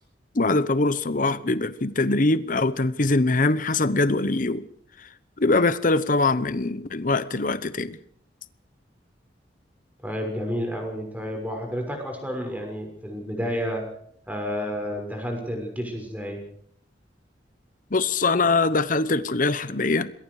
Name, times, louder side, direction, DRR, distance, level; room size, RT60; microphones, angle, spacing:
voice 1, 0.3-4.7 5.4-8.0 17.9-20.1, left 3 dB, 50° left, 0.9 m, -23 dB
voice 2, 10.0-13.8 14.3-16.4, equal, 10° right, 6.1 m, -30 dB
26.5 x 21.0 x 4.9 m
head